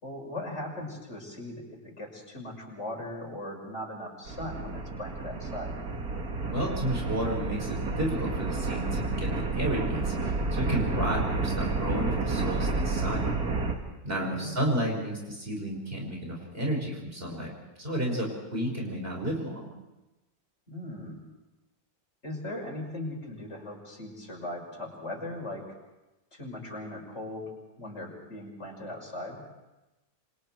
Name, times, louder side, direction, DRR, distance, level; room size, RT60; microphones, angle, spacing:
voice 1, 0.0-5.7 14.2-14.7 20.7-21.2 22.2-25.7 26.3-27.5 27.8-29.4, left 1 dB, 50° left, -1 dB, 6.1 m, -39 dB
sound 1, 4.3-13.7, right 3 dB, 75° right, 2.6 m, -30 dB
voice 2, 6.5-13.3 14.0-17.5 17.8-19.7, right 1 dB, 40° right, 0 dB, 5.9 m, -32 dB
28.0 x 26.0 x 4.6 m, 1.0 s
omnidirectional pair, 1.6 m